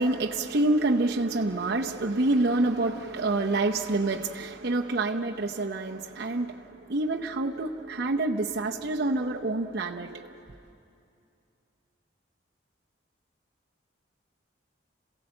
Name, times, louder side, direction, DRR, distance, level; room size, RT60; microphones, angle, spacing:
voice 1, 0.0-6.5 6.9-10.1, right 2 dB, 55° right, 0 dB, 0.8 m, -27 dB
27.5 x 16.5 x 7.7 m, 2.6 s
head